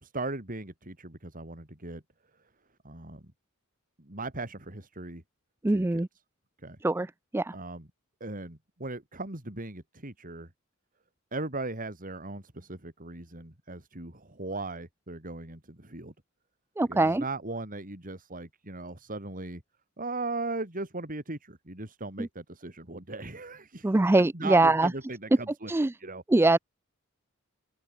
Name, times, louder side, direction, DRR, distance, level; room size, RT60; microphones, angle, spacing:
voice 1, 0.0-2.0 2.8-3.3 4.0-5.2 5.7-6.0 6.6-6.8 7.5-7.9 8.2-10.5 11.3-16.1 16.9-19.6 20.0-24.0 24.3-25.7 26.0-26.2, right 2 dB, 40° right, 3.8 m, -38 dB
voice 2, 5.6-6.1 6.8-7.1 7.3-7.5 16.8-17.2 22.2-22.3 23.8-24.9 25.7-25.9 26.3-26.6, right 2 dB, 10° right, 0.4 m, -22 dB
head